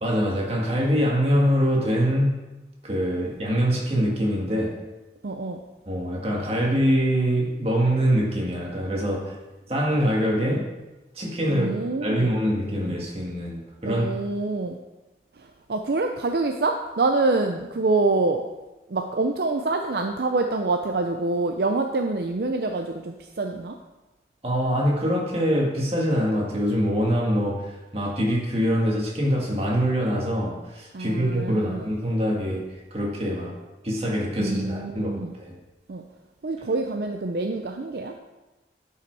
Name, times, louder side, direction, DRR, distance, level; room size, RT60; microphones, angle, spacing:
voice 1, 0.0-2.5 2.8-4.8 5.9-9.4 9.7-10.7 11.1-11.7 12.0-14.1 24.4-33.6 33.8-35.5, equal, 35° right, -2 dB, 1.9 m, -24 dB
voice 2, 5.2-5.6 11.5-12.3 13.8-14.8 15.4-18.4 18.9-23.8 30.9-31.8 34.4-35.3 35.9-36.0 36.4-38.2, right 3 dB, 65° right, 4 dB, 0.5 m, -26 dB
11.0 x 5.7 x 4.7 m, 1.1 s
head